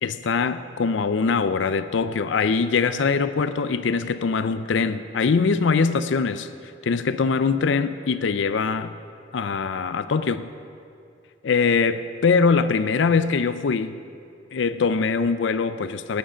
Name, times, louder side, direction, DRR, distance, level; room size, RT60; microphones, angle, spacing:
voice 1, 0.0-6.5 6.8-8.9 9.3-10.5 11.4-13.9 14.5-16.2, left 5 dB, 75° left, 12 dB, 0.4 m, -22 dB
18.0 x 8.9 x 5.1 m, 2.4 s
head